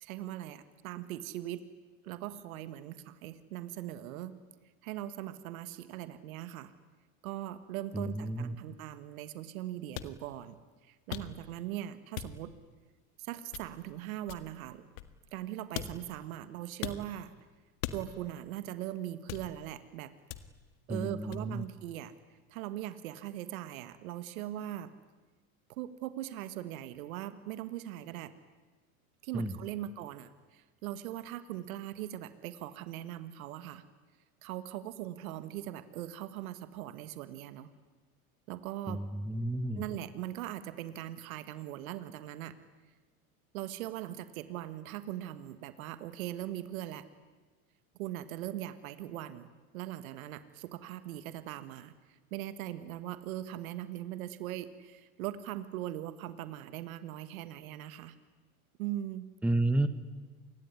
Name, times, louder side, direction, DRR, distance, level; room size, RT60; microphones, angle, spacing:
voice 1, 0.0-1.7 2.0-4.4 4.8-6.7 7.2-10.6 10.9-12.5 13.2-14.8 15.3-17.3 17.9-20.1 20.9-22.1 22.5-24.9 25.7-28.3 29.2-33.8 34.4-37.7 38.5-39.0 39.8-42.6 43.5-47.1 48.0-49.5 49.7-58.2 58.8-59.3, right 13 dB, 75° right, 12 dB, 1.7 m, -40 dB
voice 2, 7.9-8.5 20.9-21.6 29.3-29.5 38.9-39.8 59.4-59.9, right 1 dB, 5° right, 12 dB, 1.3 m, -31 dB
sound 1, 9.9-10.1 11.1-11.6 12.2-12.6 13.5-13.9 14.3-15.4 15.8-16.2 16.8-17.1 17.8-18.3 19.3-19.7 20.3-20.7 21.3-21.5, left 12 dB, 70° left, 1.9 m, -41 dB
27.5 x 20.5 x 9.7 m, 1.3 s
hypercardioid pair, 105°, 42 cm